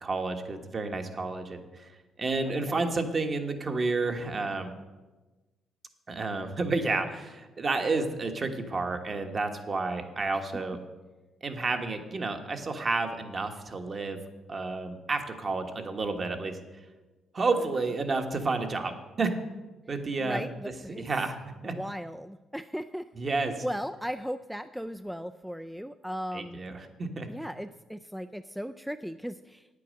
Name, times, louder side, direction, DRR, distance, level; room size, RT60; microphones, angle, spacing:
voice 1, 0.0-1.9 2.2-4.7 6.1-10.8 11.4-14.2 14.5-16.6 17.3-19.3 19.9-20.4 21.0-21.7 23.1-23.6 26.3-27.3, right 3 dB, 40° right, 5 dB, 1.3 m, -30 dB
voice 2, 2.4-2.8 20.2-21.0 21.6-23.0 23.6-26.6 27.3-29.7, equal, ahead, 10 dB, 0.3 m, -37 dB
9.1 x 8.5 x 6.5 m, 1.2 s
cardioid pair, 90°, 0 cm